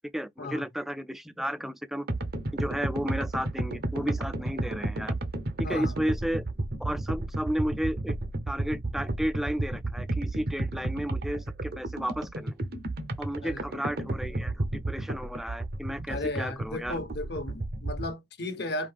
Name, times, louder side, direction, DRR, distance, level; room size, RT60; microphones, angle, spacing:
voice 1, 0.1-2.1 2.5-5.1 5.6-6.4 6.8-8.2 8.5-12.5 13.2-17.0, equal, ahead, 0.4 m, -33 dB
sound 1, 2.1-18.1, right 2 dB, 50° right, 0.8 m, -33 dB
voice 2, 5.6-5.9 13.4-13.6 16.1-18.9, left 2 dB, 55° left, 1.1 m, -35 dB
5.2 x 2.8 x 3.3 m
head